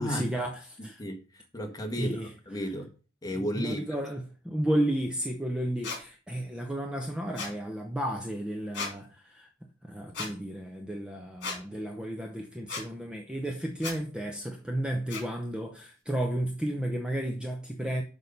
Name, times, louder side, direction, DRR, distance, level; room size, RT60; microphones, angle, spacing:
voice 1, 0.0-1.0 2.0-2.3 3.4-9.5 9.8-18.0, right 1 dB, 5° right, 0.7 m, -33 dB
voice 2, 1.0-2.2 2.5-2.9 3.2-3.8, equal, 20° left, 1.3 m, -33 dB
sound 1, 5.8-6.0 7.3-7.5 8.7-8.9 10.1-10.3 11.4-11.6 12.7-12.8 13.8-14.0 15.1-15.2, left 4 dB, 55° left, 2.2 m, -35 dB
6.3 x 5.4 x 6.6 m
head